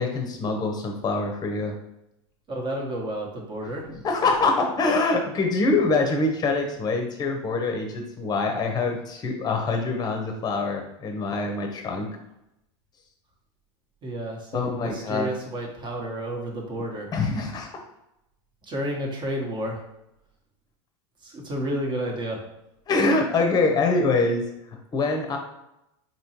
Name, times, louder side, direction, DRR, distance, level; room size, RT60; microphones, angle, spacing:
voice 1, 0.0-1.7 4.0-12.1 14.5-15.3 17.1-17.7 22.9-24.4 24.9-25.4, left 3 dB, 30° left, 3 dB, 0.8 m, -24 dB
voice 2, 2.5-3.9 14.0-17.1 18.6-19.8 21.2-22.4, right 1 dB, 30° right, 0 dB, 1.1 m, -31 dB
4.4 x 3.0 x 2.9 m, 0.86 s
hypercardioid pair, 110°, 15 cm